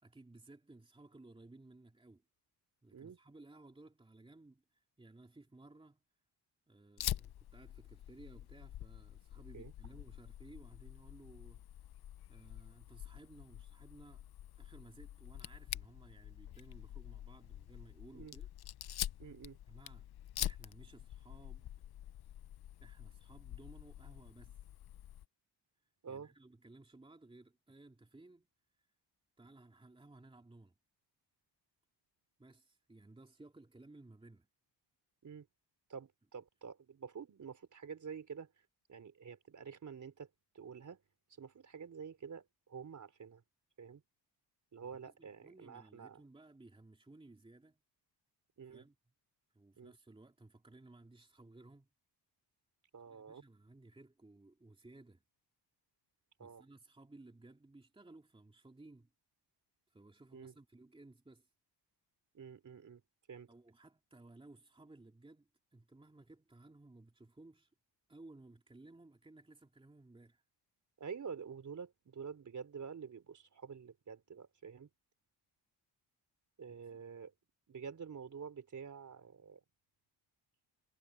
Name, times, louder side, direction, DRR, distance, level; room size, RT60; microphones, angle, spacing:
voice 1, 0.0-2.2 2.8-6.0 6.7-11.6 12.3-14.3 14.6-18.5 19.7-20.1 20.4-21.7 22.8-24.6 26.1-28.5 29.4-30.7 32.4-34.5 44.8-47.8 48.7-49.0 49.5-51.9 53.1-55.2 56.4-59.1 59.9-61.5 63.5-67.7 68.1-70.4 76.9-77.0, right 2 dB, 10° right, 2.5 m, -58 dB
Fire, 7.0-25.2, left 12 dB, 60° left, 0.7 m, -46 dB
voice 2, 19.2-19.6 26.0-26.3 35.2-35.5 35.9-38.5 38.9-40.3 40.5-41.0 41.4-43.4 43.8-44.0 44.7-46.2 48.6-48.8 49.8-49.9 52.9-53.4 56.4-56.6 60.3-60.5 62.3-63.0 63.3-63.5 71.0-74.9 76.6-77.3 77.7-79.6, right 6 dB, 40° right, 3.9 m, -48 dB
cardioid pair, 135°, 43 cm